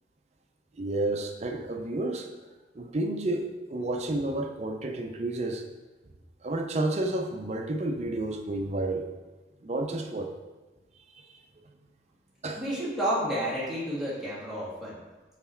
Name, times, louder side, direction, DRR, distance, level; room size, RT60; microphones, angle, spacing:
voice 1, 0.8-2.3 2.7-5.6 6.4-9.1 9.6-10.3 11.1-11.3 12.4-12.6, right 2 dB, 40° right, 3 dB, 0.6 m, -30 dB
voice 2, 12.6-15.0, equal, ahead, -9 dB, 1.9 m, -30 dB
5.9 x 4.1 x 4.4 m, 1.2 s
head